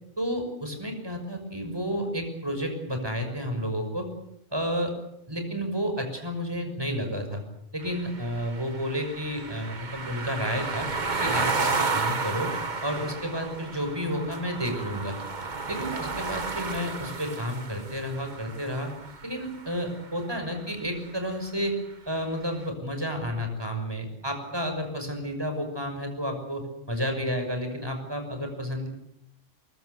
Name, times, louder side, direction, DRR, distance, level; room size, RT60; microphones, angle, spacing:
voice 1, 0.2-4.1 4.5-4.9 5.3-7.4 7.7-10.9 11.2-12.5 12.8-15.2 15.7-18.9 19.2-21.8 22.1-28.9, equal, 20° right, 5 dB, 6.1 m, -31 dB
sound 1, 7.8-19.9, right 4 dB, 40° right, 1.5 m, -32 dB
23.5 x 22.5 x 8.1 m, 0.74 s
omnidirectional pair, 1.2 m